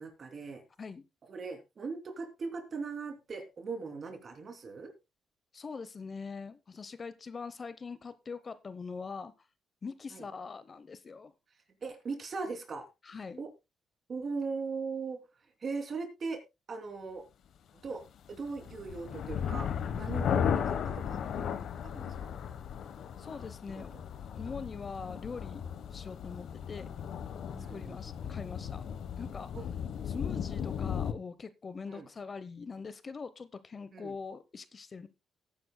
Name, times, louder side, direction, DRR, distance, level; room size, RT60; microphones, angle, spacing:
voice 1, 0.0-0.6 1.2-4.9 10.1-10.3 11.8-12.8 13.4-13.5 14.1-15.2 15.6-16.4 16.7-17.2 17.8-18.0 18.3-21.5 21.8-22.3 23.7-24.0 27.5-28.0 29.5-29.7 30.3-30.6 31.9-32.1 33.9-34.1, right 4 dB, 45° right, 6 dB, 2.9 m, -39 dB
voice 2, 5.5-9.3 9.8-11.3 13.0-13.4 23.2-23.9 24.3-26.9 27.6-28.8 29.2-29.5 30.1-35.1, left 5 dB, 35° left, 14 dB, 0.8 m, -43 dB
sound 1, 18.3-31.1, left 8 dB, 70° left, 1.1 m, -36 dB
18.0 x 9.6 x 2.2 m, 0.24 s
cardioid pair, 90°, 0 cm